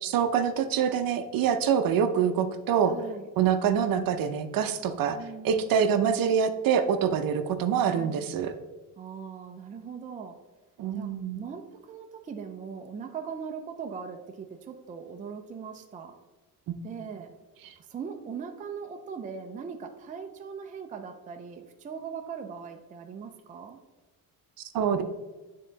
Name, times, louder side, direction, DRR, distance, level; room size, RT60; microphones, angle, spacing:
voice 1, 0.0-2.9 3.4-5.2 5.4-8.5 10.8-11.4 16.7-16.8 24.7-25.0, right 7 dB, 60° right, 9 dB, 0.6 m, -25 dB
voice 2, 2.9-3.3 5.1-5.9 7.9-8.3 9.0-10.4 10.9-16.1 16.8-17.3 17.8-23.8, right 6 dB, 20° right, 4 dB, 0.4 m, -40 dB
8.8 x 3.7 x 3.9 m, 1.2 s
cardioid pair, 160°, 40 cm